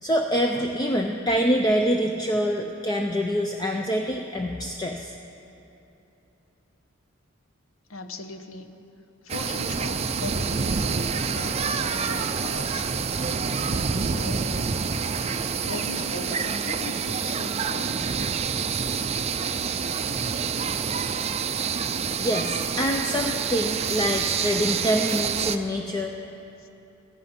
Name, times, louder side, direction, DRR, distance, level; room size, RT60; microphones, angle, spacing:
voice 1, 0.0-5.1 22.2-26.1, equal, 20° left, 3 dB, 0.5 m, -25 dB
voice 2, 7.9-8.7 9.2-18.1 26.6-26.7, left 2 dB, 80° left, 6 dB, 1.0 m, -39 dB
sound 1, 9.3-25.6, right 6 dB, 30° right, 0.5 m, -27 dB
15.0 x 14.0 x 5.9 m, 2.9 s
head